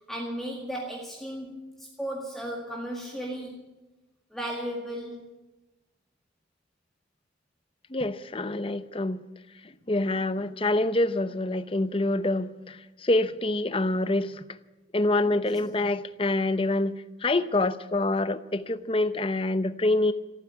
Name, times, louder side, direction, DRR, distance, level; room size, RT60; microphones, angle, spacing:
voice 1, 0.1-3.7 4.3-5.3 15.3-15.4, equal, ahead, -2 dB, 1.9 m, -35 dB
voice 2, 7.9-9.2 9.6-14.4 14.9-16.9 17.2-20.1, left 2 dB, 30° left, 12 dB, 0.7 m, -26 dB
15.5 x 9.8 x 9.6 m, 1.1 s
head